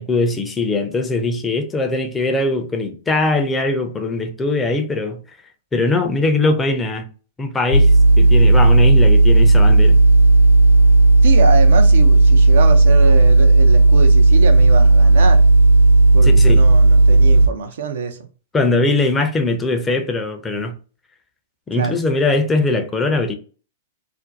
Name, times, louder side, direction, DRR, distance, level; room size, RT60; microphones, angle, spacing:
voice 1, 0.0-5.2 5.7-7.1 7.4-10.0 16.2-16.6 18.5-20.8 21.7-23.3, left 2 dB, 15° left, 0.5 m, -20 dB
sound 1, 7.7-17.5, right 2 dB, 85° left, 0.6 m, -11 dB
voice 2, 11.2-15.4 16.1-18.2 21.7-21.9, right 5 dB, 70° right, 0.5 m, -24 dB
2.5 x 2.2 x 3.8 m
figure-of-eight pair, 105°, 0 cm